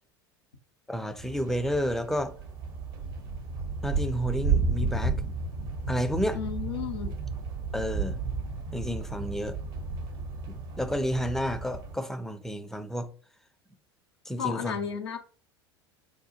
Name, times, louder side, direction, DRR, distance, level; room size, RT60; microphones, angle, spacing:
voice 1, 0.9-2.3 3.8-5.2 5.9-6.4 7.7-8.2 8.7-9.6 10.5-13.1 14.3-14.8, equal, 5° left, 0.4 m, -30 dB
sound 1, 1.2-12.0, right 4 dB, 60° right, 0.8 m, -32 dB
voice 2, 6.3-7.1 14.4-15.2, left 8 dB, 75° left, 0.5 m, -33 dB
5.0 x 2.2 x 2.7 m
figure-of-eight pair, 75°, 13 cm